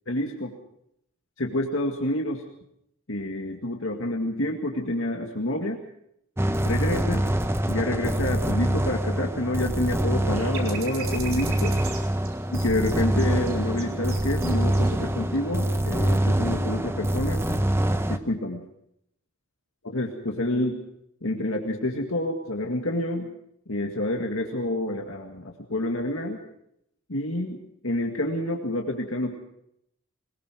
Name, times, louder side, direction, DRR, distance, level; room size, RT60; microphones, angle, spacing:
voice 1, 0.1-0.6 1.4-2.4 3.1-5.8 6.6-7.3 7.7-11.8 12.5-17.6 18.1-18.6 19.8-20.8 21.2-23.3 23.7-26.4 27.1-29.4, left 1 dB, 65° left, 2 dB, 2.0 m, -28 dB
sound 1, 6.4-18.2, right 1 dB, 10° right, 0.8 m, -25 dB
sound 2, 10.3-14.9 15.3-15.4, right 6 dB, 70° right, 4.2 m, -39 dB
21.5 x 20.5 x 6.1 m, 0.76 s
head